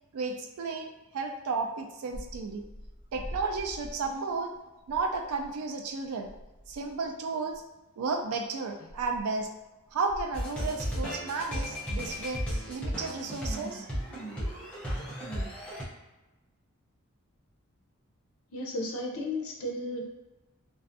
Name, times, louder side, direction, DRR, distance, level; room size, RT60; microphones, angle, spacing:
voice 1, 0.1-2.6 3.1-4.5 4.9-6.3 6.7-7.6 8.0-9.5 9.9-12.4 12.7-13.9, right 4 dB, 80° right, 4 dB, 0.3 m, -33 dB
sound 1, 2.1-4.6 4.8-5.6 5.9-6.0 6.2-7.1 7.5-7.6 8.3-8.4 8.9-9.5 9.9-10.9 11.4-11.6 12.0-13.0, equal, 40° right, 0.7 m, -46 dB
sound 2, 10.3-15.8, equal, 5° left, 0.5 m, -34 dB
voice 2, 18.5-20.1, left 1 dB, 70° left, 0 dB, 0.5 m, -34 dB
2.4 x 2.3 x 2.5 m, 1.1 s
head